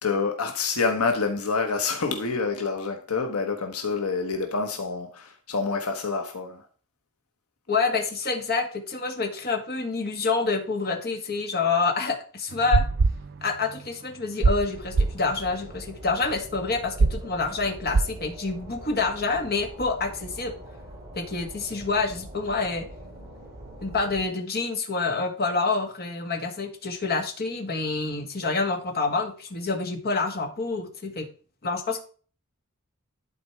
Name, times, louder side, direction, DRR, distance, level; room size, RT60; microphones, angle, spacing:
voice 1, 0.0-6.7, left 4 dB, 75° left, 1.2 m, -27 dB
voice 2, 7.7-12.8 13.4-20.5 21.1-22.9 23.8-31.3 31.6-32.0, left 4 dB, 45° left, 1.7 m, -27 dB
sound 1, 12.5-13.9 14.2-14.7 14.9-15.2 17.0-17.2 17.9-18.2, right 3 dB, 50° right, 0.4 m, -23 dB
sound 2, 14.7-24.3, right 1 dB, 25° right, 5.0 m, -43 dB
11.0 x 4.4 x 4.6 m
head